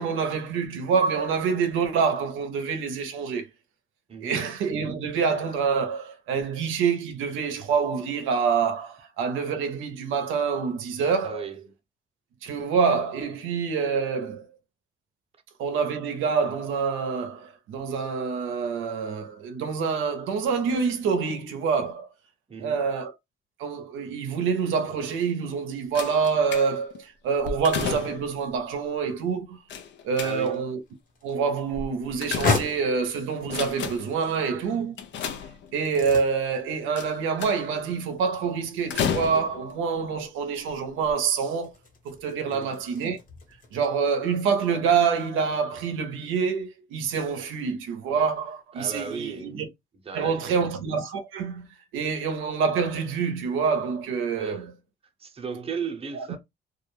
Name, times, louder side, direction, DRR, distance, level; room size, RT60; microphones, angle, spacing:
voice 1, 0.0-3.5 4.2-11.4 12.4-14.5 15.6-22.1 22.6-23.2 23.6-29.6 30.0-30.8 31.2-35.0 35.7-41.7 42.0-43.2 43.7-49.7 50.1-51.7 51.9-54.7 56.1-56.4, right 6 dB, 90° right, 0.6 m, -26 dB
voice 2, 11.2-11.7 22.5-22.8 30.2-30.6 42.5-42.8 48.8-49.6 50.0-50.5 54.4-54.8 55.2-56.4, right 5 dB, 30° right, 0.7 m, -36 dB
sound 1, 25.9-27.0 27.4-28.4 29.7-30.7 31.7-33.0 33.4-34.2 35.0-36.0 37.0-37.8 38.9-39.7 40.5-40.7 41.0-41.1, left 7 dB, 65° left, 0.5 m, -32 dB
sound 2, 30.7-43.9, left 4 dB, 45° left, 1.1 m, -37 dB
2.3 x 2.1 x 3.0 m
cardioid pair, 90°, 20 cm